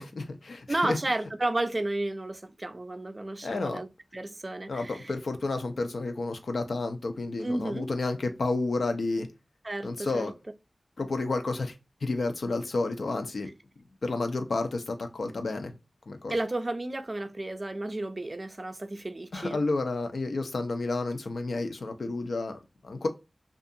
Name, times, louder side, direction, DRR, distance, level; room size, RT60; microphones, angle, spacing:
voice 1, 0.0-1.0 3.4-3.8 4.7-9.3 9.8-10.3 11.0-11.7 12.0-13.5 14.0-15.7 16.1-16.3 19.3-23.1, left 3 dB, 85° left, 0.5 m, -31 dB
voice 2, 0.7-3.9 4.1-5.1 7.4-7.9 9.6-10.3 16.3-19.6, right 2 dB, 40° right, 0.4 m, -32 dB
2.7 x 2.4 x 2.5 m
wide cardioid pair, 70°, 0 cm